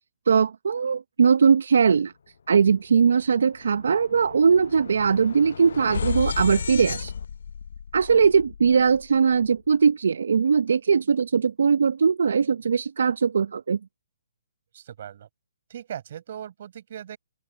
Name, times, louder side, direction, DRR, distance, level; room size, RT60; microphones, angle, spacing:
voice 1, 0.3-2.1 2.5-7.1 7.9-13.8, right 6 dB, 70° right, 0.8 m, -20 dB
sound 1, 2.8-2.9 3.2-9.5, left 6 dB, 70° left, 1.1 m, -34 dB
voice 2, 14.7-15.3 15.7-17.2, right 10 dB, 50° right, 5.5 m, -38 dB
open air
hypercardioid pair, 145°, 0 cm